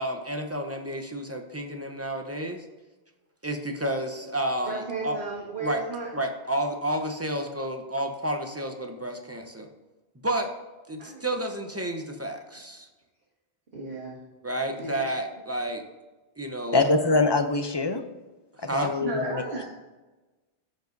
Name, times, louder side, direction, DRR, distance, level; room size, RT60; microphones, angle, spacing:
voice 1, 0.0-2.6 3.4-5.2 5.6-5.8 6.1-9.7 10.2-10.5 10.9-12.9 14.4-15.8 16.4-16.9 18.5-19.0, right 1 dB, 15° right, 4 dB, 0.6 m, -31 dB
voice 2, 4.6-6.1 11.0-11.2 13.7-14.2 14.8-15.0 19.0-19.6, right 3 dB, 60° right, -6 dB, 1.8 m, -34 dB
voice 3, 16.7-18.0 18.7-19.6, left 3 dB, 35° left, 7 dB, 0.4 m, -24 dB
14.5 x 5.2 x 2.6 m, 1.2 s
omnidirectional pair, 1.1 m